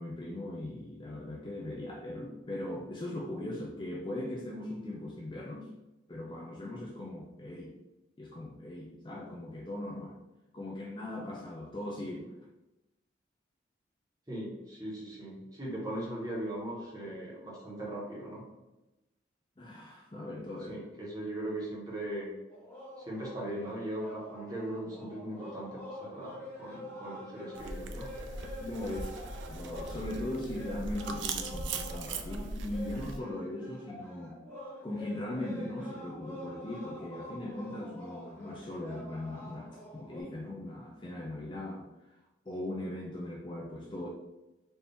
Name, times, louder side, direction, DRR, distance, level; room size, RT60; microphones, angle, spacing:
voice 1, 0.0-5.7 6.1-7.7 8.2-10.2 10.5-12.2 19.6-20.8 28.6-34.4 34.8-42.2 42.5-44.1, left 1 dB, 25° left, -2 dB, 0.5 m, -39 dB
voice 2, 14.3-18.4 20.7-22.3 23.0-28.1, right 1 dB, 20° right, -5 dB, 1.3 m, -39 dB
sound 1, 22.5-40.2, left 1 dB, 10° left, 1.2 m, -47 dB
sound 2, 27.5-33.2, right 3 dB, 80° right, 0.4 m, -39 dB
4.3 x 2.8 x 3.4 m, 1.0 s
head